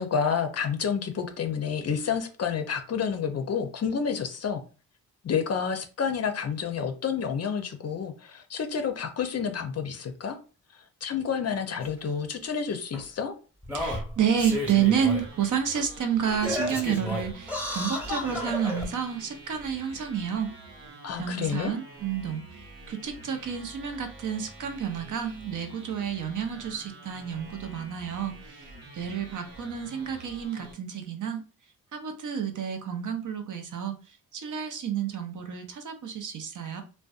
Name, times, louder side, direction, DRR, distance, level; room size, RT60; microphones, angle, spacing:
voice 1, 0.0-4.6 5.2-10.4 11.0-13.3 21.0-21.8, left 6 dB, 40° left, 0.5 m, -29 dB
Singing, 11.8-11.9 12.9-13.0 13.6-15.3 15.7-15.8 16.3-18.9 19.6-19.7, left 1 dB, 5° right, 1.0 m, -32 dB
voice 2, 13.7-20.5 21.2-22.4 22.9-31.4 31.9-36.8, right 8 dB, 50° right, 0.6 m, -30 dB
sound 1, 14.3-30.7, right 2 dB, 80° right, 0.9 m, -47 dB
2.5 x 2.2 x 2.4 m
supercardioid pair, 55°, 39 cm